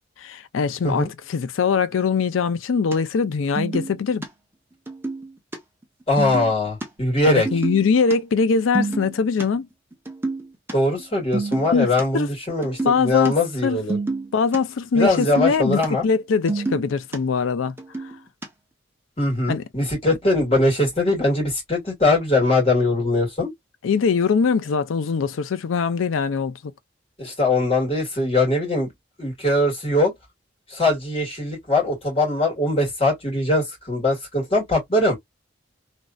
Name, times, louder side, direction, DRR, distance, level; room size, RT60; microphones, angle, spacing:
voice 1, 0.2-4.2 7.3-9.7 11.7-12.3 12.8-13.4 13.6-13.8 14.3-17.8 19.5-19.6 23.8-26.7, left 5 dB, 85° left, 0.4 m, -22 dB
sound 1, 2.9-3.0 3.2-3.3 3.6-4.3 4.9-5.6 5.8-5.9 6.2-6.9 7.5-8.1 8.4-9.4 9.9-10.7 11.0-11.1 11.3-12.0 12.5-13.3 13.6-14.6 15.0-15.9 16.1-17.2 17.6-18.5, right 3 dB, 10° right, 0.7 m, -28 dB
voice 2, 6.1-7.5 10.7-14.0 14.9-16.1 19.2-23.5 27.2-28.9 29.2-30.1 30.7-35.2, left 2 dB, 30° left, 1.9 m, -21 dB
3.1 x 2.6 x 2.3 m
head